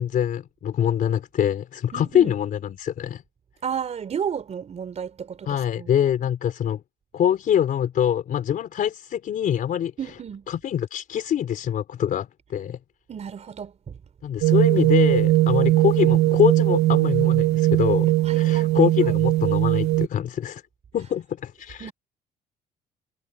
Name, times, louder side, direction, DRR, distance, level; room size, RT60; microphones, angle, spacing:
voice 1, 0.0-3.2 5.5-6.8 7.1-9.9 10.5-12.8 14.2-20.6 20.9-21.9, left 9 dB, 55° left, 4.0 m, -24 dB
voice 2, 1.9-2.3 3.6-5.9 10.0-10.5 13.1-14.0 18.2-19.2 21.8-21.9, right 7 dB, 40° right, 4.1 m, -33 dB
sound 1, 14.4-20.1, right 16 dB, 80° right, 0.8 m, -19 dB
cardioid pair, 110°, 17 cm